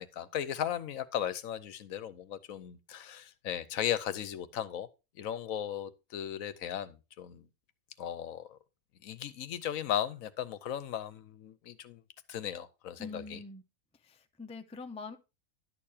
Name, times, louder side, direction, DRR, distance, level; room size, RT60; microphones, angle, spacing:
voice 1, 0.0-4.9 5.2-7.5 8.0-8.6 9.0-12.0 12.3-13.4, left 10 dB, 75° left, 1.1 m, -36 dB
voice 2, 13.0-13.6 14.0-15.2, left 4 dB, 10° left, 0.4 m, -44 dB
11.5 x 6.7 x 2.7 m
omnidirectional pair, 1.5 m